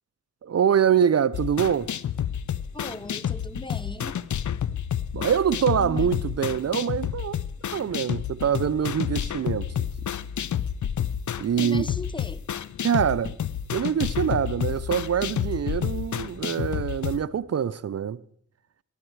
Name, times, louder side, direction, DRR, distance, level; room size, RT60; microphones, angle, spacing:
voice 1, 0.4-1.9 5.1-7.4 7.7-9.9 11.4-11.9 12.8-13.4 13.7-18.2, right 8 dB, 55° right, 0.5 m, -24 dB
sound 1, 1.3-17.2, left 9 dB, 70° left, 0.6 m, -30 dB
voice 2, 2.7-4.2 5.8-6.1 11.6-12.5, left 1 dB, 15° left, 0.8 m, -38 dB
14.0 x 13.0 x 4.6 m
cardioid pair, 45°, 31 cm